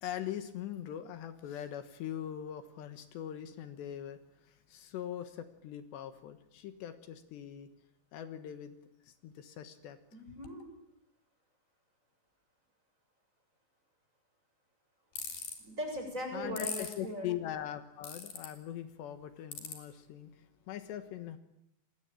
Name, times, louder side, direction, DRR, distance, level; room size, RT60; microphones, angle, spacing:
voice 1, 0.0-7.7 8.1-8.8 9.0-10.0 16.3-21.4, left 11 dB, 75° left, 10 dB, 3.5 m, -42 dB
voice 2, 10.1-10.7 15.6-17.3, equal, 15° right, 3 dB, 7.1 m, -39 dB
sound 1, 15.2-15.5 16.6-16.9 18.0-18.5 19.5-19.7, left 6 dB, 55° left, 5.0 m, -38 dB
29.5 x 21.0 x 9.0 m, 0.78 s
omnidirectional pair, 5.0 m